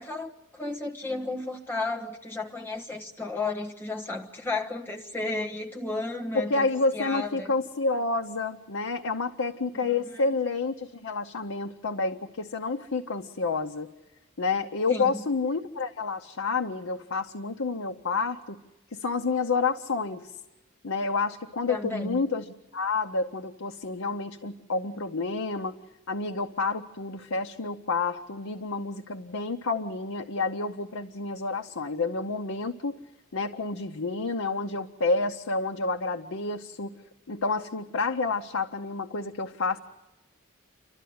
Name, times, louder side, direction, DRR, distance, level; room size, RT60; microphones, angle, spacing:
voice 1, 0.0-7.5 9.7-10.4 14.9-15.2 21.7-22.2, left 3 dB, 10° left, 1 dB, 1.4 m, -33 dB
voice 2, 6.3-13.9 14.4-18.6 19.0-20.3 20.8-22.4 22.7-25.7 26.1-33.0 33.3-36.9 37.3-39.8, left 3 dB, 80° left, 5 dB, 0.8 m, -29 dB
29.5 x 12.5 x 9.4 m, 1.0 s
head